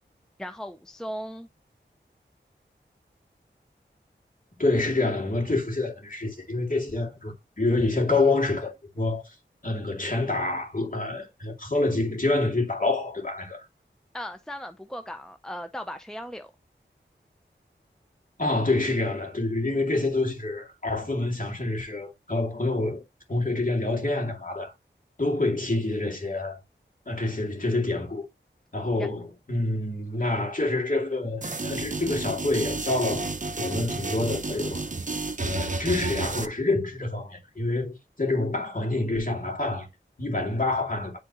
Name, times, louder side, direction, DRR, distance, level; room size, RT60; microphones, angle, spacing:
voice 1, 0.4-1.5 14.1-16.5 29.0-29.1, equal, 5° left, 0.7 m, -37 dB
voice 2, 4.6-9.4 9.6-13.6 18.4-23.0 23.3-24.7 25.2-26.6 27.1-28.3 28.7-33.3 33.6-34.8 35.4-39.9 40.2-41.1, left 2 dB, 45° left, 2.4 m, -27 dB
sound 1, 31.4-36.5, right 3 dB, 40° right, 0.9 m, -31 dB
9.9 x 3.8 x 3.0 m
wide cardioid pair, 40°, 20 cm